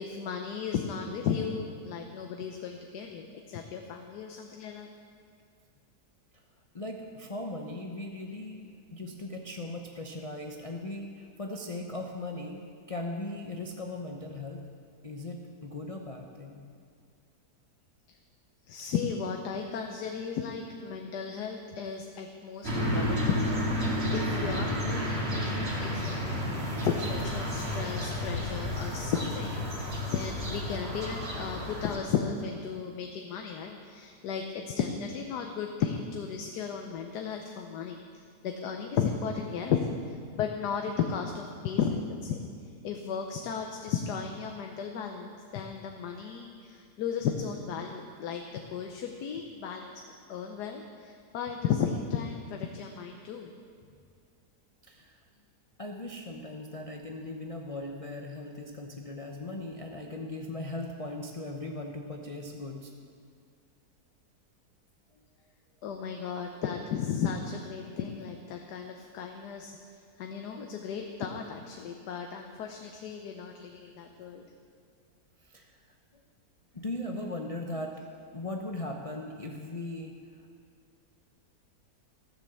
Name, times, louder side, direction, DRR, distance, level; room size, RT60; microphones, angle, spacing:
voice 1, 0.0-4.9 18.7-39.8 40.1-42.4 42.8-50.0 50.3-53.5 65.8-74.5, left 7 dB, 80° left, 4 dB, 1.3 m, -35 dB
voice 2, 6.7-8.6 8.9-12.6 12.9-14.6 15.0-16.6 54.9-55.1 55.8-62.9 75.5-75.7 76.7-78.1 78.3-80.1, left 2 dB, 35° left, 2 dB, 0.5 m, -38 dB
sound 1, 22.6-32.0, left 1 dB, 40° right, 2.5 m, -31 dB
15.0 x 7.4 x 6.9 m, 2.2 s
omnidirectional pair, 1.7 m